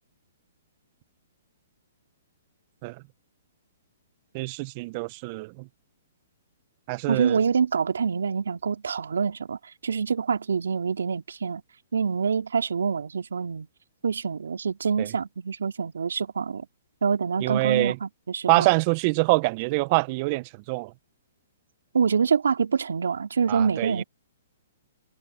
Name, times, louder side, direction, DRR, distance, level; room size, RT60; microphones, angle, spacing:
voice 1, 4.3-5.7 6.9-7.4 15.0-15.1 17.4-18.0 18.5-20.9 23.5-24.0, right 26 dB, 40° right, 1.2 m, -25 dB
voice 2, 7.1-11.6 11.9-13.7 14.0-16.7 17.0-18.7 21.9-24.0, right 6 dB, 80° right, 3.1 m, -26 dB
hypercardioid pair, 130°, 0 cm